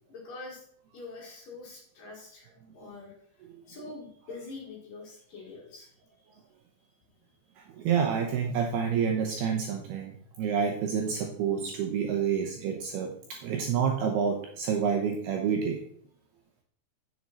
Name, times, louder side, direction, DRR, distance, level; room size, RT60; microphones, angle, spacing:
voice 1, 0.1-0.6 0.9-3.1 3.7-6.6 7.2-7.6, left 3 dB, 55° left, -1 dB, 3.0 m, -45 dB
voice 2, 7.6-15.8, right 7 dB, 75° right, 2 dB, 2.5 m, -28 dB
9.3 x 7.5 x 4.2 m, 0.63 s
omnidirectional pair, 5.5 m